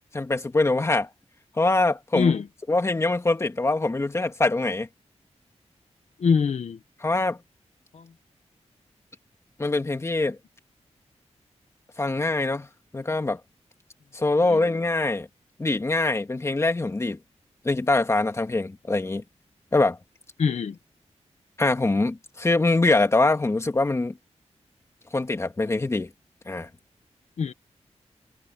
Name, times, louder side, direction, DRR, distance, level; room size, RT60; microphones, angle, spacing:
voice 1, 0.1-1.1 1.6-2.3 2.7-4.9 7.0-7.4 9.6-10.4 12.0-12.7 12.9-13.4 14.1-15.3 15.6-17.2 17.6-19.2 19.7-20.0 21.6-24.2 25.1-26.1 26.5-26.7, left 2 dB, 25° left, 2.0 m, -23 dB
voice 2, 2.1-2.5 6.2-6.8 7.9-8.1 14.5-14.6 20.4-20.8 27.4-27.5, left 6 dB, 70° left, 1.2 m, -23 dB
wide cardioid pair, 145°, 12 cm